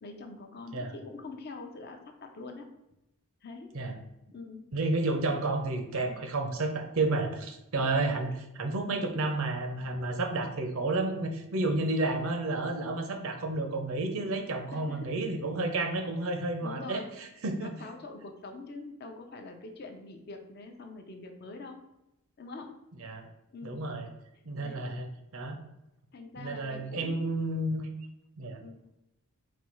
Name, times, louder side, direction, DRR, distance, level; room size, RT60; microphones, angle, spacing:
voice 1, 0.0-2.7 3.4-3.7 4.3-4.7 14.7-15.1 16.6-17.1 17.6-21.8 22.4-22.7 23.5-23.8 24.3-24.9 26.1-27.4 28.6-28.8, left 3 dB, 45° left, 4 dB, 0.5 m, -44 dB
voice 2, 4.7-17.7 23.0-23.3 23.6-24.1 24.5-25.1 25.3-25.6 26.4-27.9 28.4-28.6, right 2 dB, 70° right, 6 dB, 0.6 m, -31 dB
4.2 x 2.3 x 4.3 m, 0.89 s
head